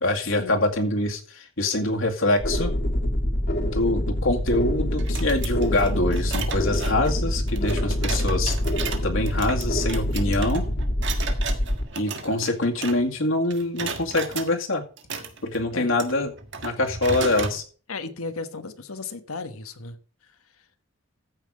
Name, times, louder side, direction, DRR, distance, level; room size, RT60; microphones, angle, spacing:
voice 1, 0.0-2.7 3.6-8.6 9.0-10.7 11.9-14.8 15.4-16.3 16.6-17.6, left 2 dB, 65° left, 2.1 m, -24 dB
sound 1, 2.4-11.8, left 1 dB, 50° left, 2.0 m, -25 dB
sound 2, 5.0-13.2 13.5-14.5 15.0-17.6, right 5 dB, 55° right, 1.6 m, -35 dB
voice 2, 17.9-20.0, left 3 dB, 85° left, 1.3 m, -35 dB
14.5 x 5.8 x 4.8 m
head